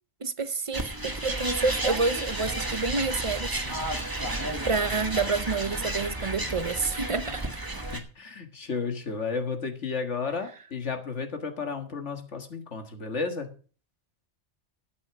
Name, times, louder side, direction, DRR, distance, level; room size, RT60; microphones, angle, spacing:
voice 1, 0.2-3.6 4.6-7.6, right 4 dB, 35° right, 0.7 m, -28 dB
sound 1, 0.7-8.0, right 1 dB, 20° right, 1.7 m, -32 dB
voice 2, 7.9-13.5, left 4 dB, 85° left, 2.0 m, -33 dB
12.5 x 8.3 x 6.0 m
omnidirectional pair, 1.2 m